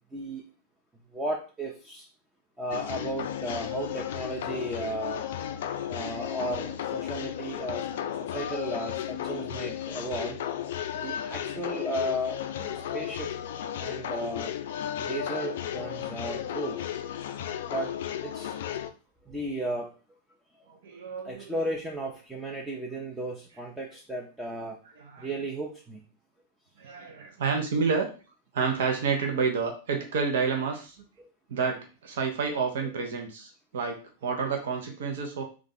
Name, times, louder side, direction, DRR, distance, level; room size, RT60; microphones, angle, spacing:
voice 1, 0.1-0.4 1.1-2.0 2.6-7.9 8.3-10.4 11.0-12.4 12.7-13.3 13.8-14.5 15.0-16.8 17.7-17.9 18.2-18.5 19.3-19.9 21.2-24.8 25.2-26.0 31.2-31.3, right 1 dB, 10° right, -1 dB, 0.7 m, -34 dB
sound 1, 2.7-18.9, left 10 dB, 55° left, 0.3 m, -34 dB
voice 2, 20.8-21.4 25.1-25.3 26.8-28.1 28.5-30.9 31.5-35.4, right 5 dB, 60° right, 3 dB, 0.7 m, -29 dB
3.6 x 2.4 x 3.8 m, 0.34 s
figure-of-eight pair, 90°, 0 cm